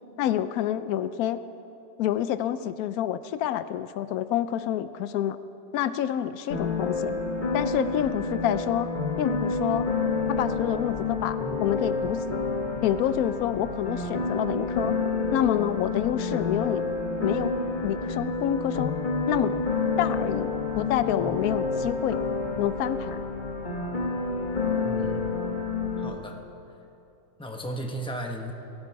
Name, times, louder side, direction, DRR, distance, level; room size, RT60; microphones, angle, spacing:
voice 1, 0.2-1.4 2.0-5.4 5.7-7.2 7.5-8.9 9.2-9.9 10.3-12.4 12.8-15.0 15.3-16.8 17.2-17.6 17.8-18.9 19.3-19.6 20.0-22.2 22.6-23.2, left 11 dB, 75° left, 13 dB, 0.8 m, -27 dB
sound 1, 6.5-26.1, left 4 dB, 30° left, 1.3 m, -29 dB
voice 2, 24.8-25.3 26.0-26.4 27.4-28.5, equal, 5° left, 2 dB, 0.5 m, -35 dB
18.0 x 16.0 x 4.7 m, 2.9 s
omnidirectional pair, 2.0 m